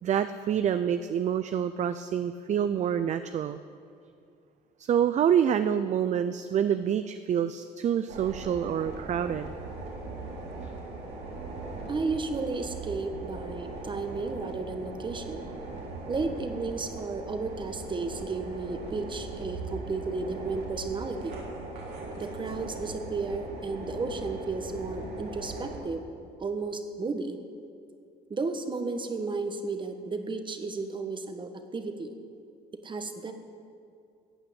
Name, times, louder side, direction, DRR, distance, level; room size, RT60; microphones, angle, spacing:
voice 1, 0.0-3.6 4.8-9.5, right 9 dB, 45° right, 11 dB, 0.5 m, -27 dB
sound 1, 8.1-25.8, right 3 dB, 80° right, 3.9 m, -39 dB
voice 2, 11.9-15.4 16.1-21.3 22.2-26.1 26.4-27.4 28.3-32.2 32.8-33.3, right 3 dB, 30° right, 7 dB, 1.5 m, -33 dB
15.0 x 8.8 x 8.8 m, 2.5 s
cardioid pair, 110°, 17 cm